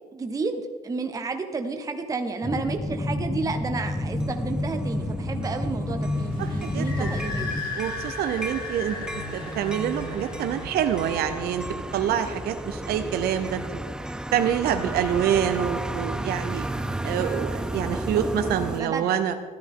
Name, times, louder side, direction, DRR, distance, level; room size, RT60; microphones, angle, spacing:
voice 1, 0.1-7.5 18.8-19.1, right 4 dB, 20° right, 6 dB, 0.8 m, -31 dB
sound 1, 2.4-7.6, left 1 dB, 15° left, 0.9 m, -29 dB
sound 2, 3.9-18.8, right 1 dB, 5° right, 0.4 m, -34 dB
sound 3, 6.0-13.3, left 3 dB, 60° left, 2.6 m, -37 dB
voice 2, 6.4-7.1 7.8-9.0 9.3-13.8 14.3-16.6 17.0-19.3, right 9 dB, 65° right, 8 dB, 0.6 m, -26 dB
13.0 x 10.5 x 3.7 m, 1.5 s
cardioid pair, 110°, 17 cm